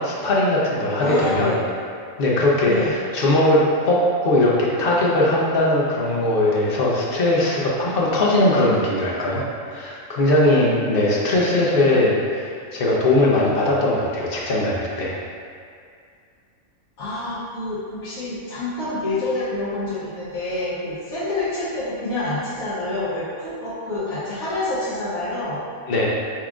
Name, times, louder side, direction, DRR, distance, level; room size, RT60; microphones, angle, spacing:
voice 1, 0.0-1.5 2.2-9.4 9.7-15.2 25.9-26.1, left 1 dB, 50° left, -4 dB, 0.8 m, -20 dB
voice 2, 1.0-1.6 2.6-2.9 17.0-25.6, left 2 dB, 75° left, -12 dB, 1.3 m, -27 dB
5.9 x 3.6 x 2.4 m, 2.2 s
omnidirectional pair, 1.5 m